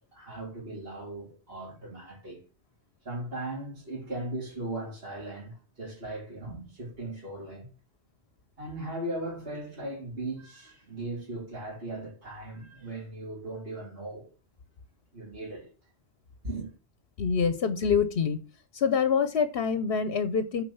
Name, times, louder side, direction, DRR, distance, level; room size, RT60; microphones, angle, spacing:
voice 1, 0.1-2.4 3.0-7.7 8.6-14.3 15.1-15.7 16.4-16.7, right 2 dB, 60° right, 3.2 m, -38 dB
voice 2, 17.2-18.4 18.7-20.6, left 6 dB, 65° left, 1.0 m, -26 dB
8.6 x 4.7 x 7.0 m
omnidirectional pair, 1.1 m